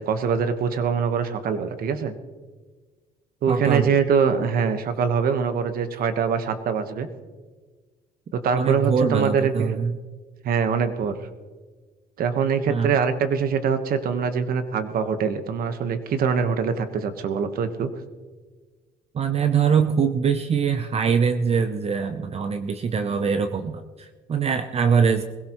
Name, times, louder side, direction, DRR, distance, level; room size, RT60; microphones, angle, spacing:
voice 1, 0.0-2.1 3.4-7.1 8.3-9.7 10.4-11.1 12.2-17.9, right 6 dB, 60° right, 9 dB, 1.4 m, -23 dB
voice 2, 3.5-4.0 8.5-10.0 12.7-12.9 19.1-25.2, right 6 dB, 35° right, 8 dB, 0.7 m, -23 dB
21.5 x 16.5 x 3.1 m, 1.4 s
cardioid pair, 110°, 17 cm